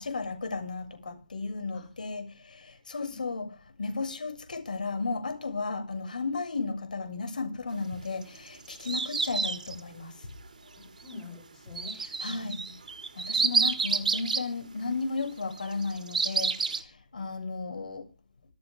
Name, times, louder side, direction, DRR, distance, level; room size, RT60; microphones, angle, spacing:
voice 1, 0.0-10.2 11.9-12.6 13.1-18.1, left 4 dB, 65° left, 7.0 m, -34 dB
voice 2, 3.1-3.5 10.8-11.9 12.2-12.8, left 4 dB, 10° left, 5.2 m, -46 dB
sound 1, 8.2-9.8 11.7-14.5 15.6-16.8, right 4 dB, 65° right, 3.8 m, -28 dB
26.5 x 8.9 x 3.7 m
hypercardioid pair, 175°, 5 cm